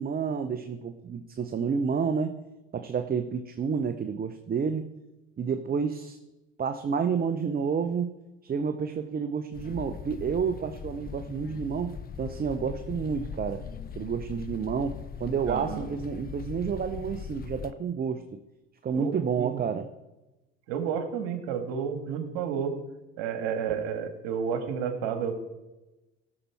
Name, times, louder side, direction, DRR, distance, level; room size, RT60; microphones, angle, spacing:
voice 1, 0.0-2.4 2.7-4.8 5.4-6.2 6.6-8.1 8.4-13.6 14.0-18.4 18.8-19.9, right 6 dB, 30° right, 9 dB, 0.8 m, -30 dB
sound 1, 9.5-17.7, left 7 dB, 30° left, 0.6 m, -40 dB
voice 2, 15.5-15.9 18.9-19.6 20.7-22.8 23.2-25.4, right 7 dB, 75° right, 7 dB, 1.8 m, -31 dB
16.5 x 6.8 x 4.6 m, 1.0 s
hypercardioid pair, 80°, 32 cm